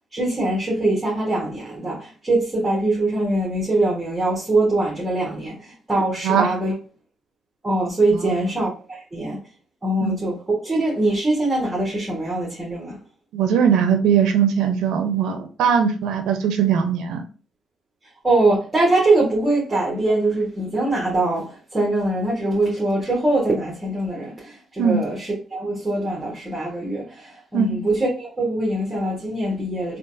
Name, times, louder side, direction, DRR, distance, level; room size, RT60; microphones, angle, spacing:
voice 1, 0.1-6.7 7.6-9.4 9.8-13.0 18.2-30.0, right 2 dB, 20° right, 1.4 m, -22 dB
voice 2, 8.1-8.5 10.0-10.2 13.3-17.2 24.8-25.0 27.5-27.8, right 7 dB, 85° right, 0.5 m, -20 dB
3.7 x 2.4 x 2.6 m
cardioid pair, 90°, 0 cm